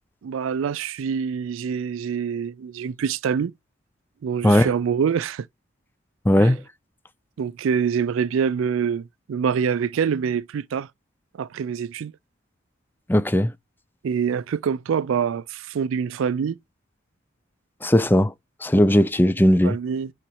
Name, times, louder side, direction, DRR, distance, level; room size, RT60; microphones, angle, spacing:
voice 1, 0.2-3.5 4.2-5.5 6.4-6.5 7.4-10.9 11.3-12.1 14.0-16.6 19.6-20.1, right 7 dB, 75° right, 0.3 m, -25 dB
voice 2, 6.3-6.6 13.1-13.5 17.8-18.3 18.6-19.8, left 1 dB, 10° left, 0.4 m, -17 dB
5.9 x 4.0 x 4.7 m
head